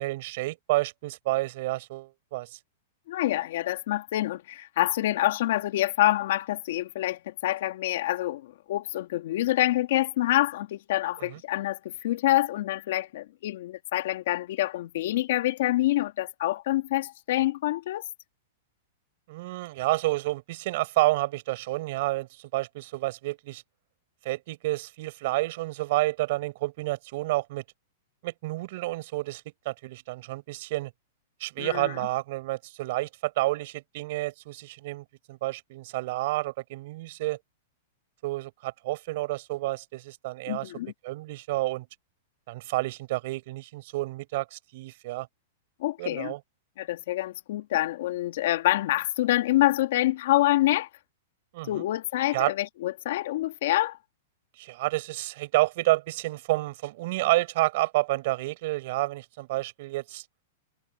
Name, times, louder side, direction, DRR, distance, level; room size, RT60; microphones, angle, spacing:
voice 1, 0.0-2.6 11.2-11.4 19.3-23.6 24.2-27.6 28.2-30.9 31.4-37.4 38.2-40.7 41.0-41.9 42.5-45.3 46.0-46.4 51.5-51.8 52.3-52.5 54.6-60.2, right 19 dB, 55° right, 6.4 m, -29 dB
voice 2, 3.1-18.0 31.6-32.0 40.5-40.9 45.8-46.3 46.8-50.9 51.6-54.0, left 15 dB, 65° left, 2.2 m, -26 dB
hypercardioid pair, 145°, 0 cm